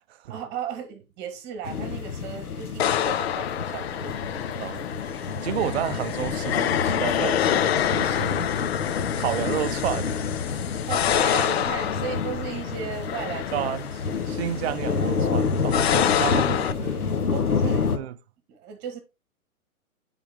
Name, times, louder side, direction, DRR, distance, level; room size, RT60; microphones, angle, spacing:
voice 1, 0.3-4.6 10.9-13.7 14.0-14.4 15.9-16.8 17.3-18.0 18.5-19.0, right 7 dB, 25° right, 1.6 m, -36 dB
sound 1, 1.6-18.0, left 5 dB, 85° left, 1.1 m, -29 dB
sound 2, 2.8-16.7, left 10 dB, 45° left, 0.5 m, -27 dB
voice 2, 5.4-8.6 9.2-10.2 13.5-13.9 14.3-16.5 16.8-17.0 18.0-18.2, right 12 dB, 50° right, 0.5 m, -31 dB
9.5 x 3.9 x 3.4 m
hypercardioid pair, 130°, 43 cm